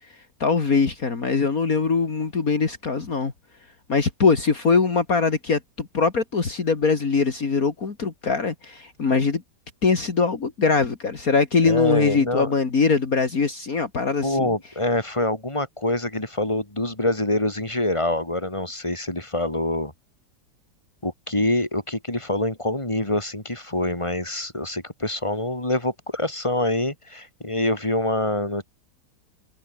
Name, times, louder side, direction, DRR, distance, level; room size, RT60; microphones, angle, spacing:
voice 1, 0.4-3.3 3.9-9.4 9.8-14.5, left 4 dB, 55° left, 2.8 m, -22 dB
voice 2, 11.6-12.5 14.2-19.9 21.0-28.7, left 1 dB, 15° left, 4.6 m, -25 dB
omnidirectional pair, 1.8 m